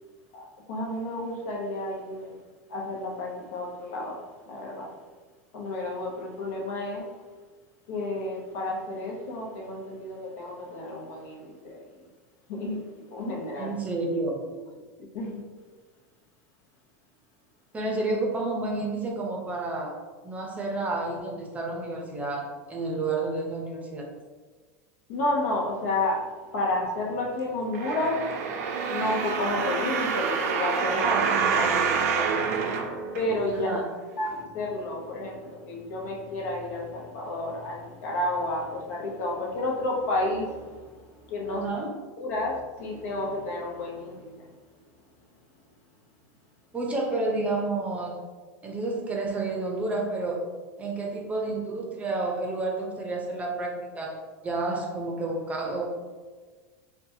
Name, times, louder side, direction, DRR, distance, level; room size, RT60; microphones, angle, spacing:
voice 1, 0.3-2.4 2.7-5.0 5.5-7.2 7.9-12.1 12.5-13.8 15.1-15.4 25.1-31.2 31.6-33.7 34.2-41.8 42.2-44.6, left 2 dB, 75° left, -1 dB, 0.8 m, -31 dB
voice 2, 13.6-14.4 17.7-20.0 20.2-24.0 31.0-31.8 33.5-33.8 41.5-41.9 46.7-48.2 48.6-50.5 50.8-55.9, right 2 dB, 15° right, 0 dB, 0.6 m, -30 dB
sound 1, 27.7-33.7 34.3-34.4, right 6 dB, 80° right, 0.4 m, -27 dB
4.0 x 2.2 x 2.7 m, 1.4 s
supercardioid pair, 130°, 8 cm